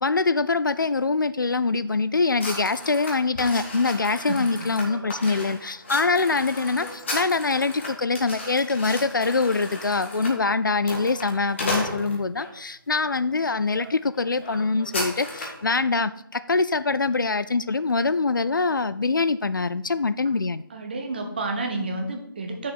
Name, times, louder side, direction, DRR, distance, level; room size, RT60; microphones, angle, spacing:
voice 1, 0.0-20.6, left 4 dB, 60° left, 14 dB, 0.4 m, -24 dB
sound 1, 2.4-12.5 13.1-13.4 13.7-13.9 14.1-15.6, left 2 dB, 30° left, 1.7 m, -34 dB
voice 2, 20.7-22.7, right 2 dB, 25° right, 4 dB, 1.0 m, -30 dB
6.5 x 5.6 x 6.2 m, 0.75 s
figure-of-eight pair, 160°, 12 cm